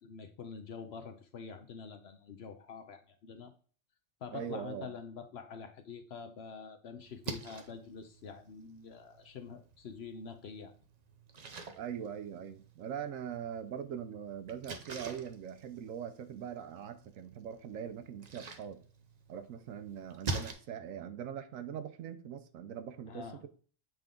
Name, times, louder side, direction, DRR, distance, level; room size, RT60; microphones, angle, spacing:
voice 1, 0.0-3.5 4.2-10.8 23.1-23.4, left 5 dB, 60° left, 0.8 m, -46 dB
voice 2, 4.3-4.9 11.8-18.8 19.3-23.5, right 8 dB, 75° right, 1.0 m, -42 dB
Splash splatter, 7.0-20.5, right 3 dB, 45° right, 0.5 m, -46 dB
7.6 x 3.5 x 3.7 m
omnidirectional pair, 1.4 m